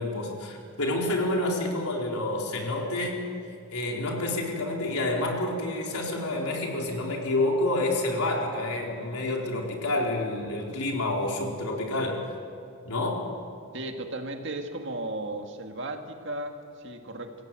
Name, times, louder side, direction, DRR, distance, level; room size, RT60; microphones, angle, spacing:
voice 1, 0.0-3.2 3.7-12.3 12.8-13.3, left 2 dB, 90° left, -1 dB, 4.2 m, -28 dB
voice 2, 13.7-17.3, right 2 dB, 55° right, 4 dB, 2.0 m, -35 dB
27.5 x 16.5 x 7.6 m, 2.3 s
head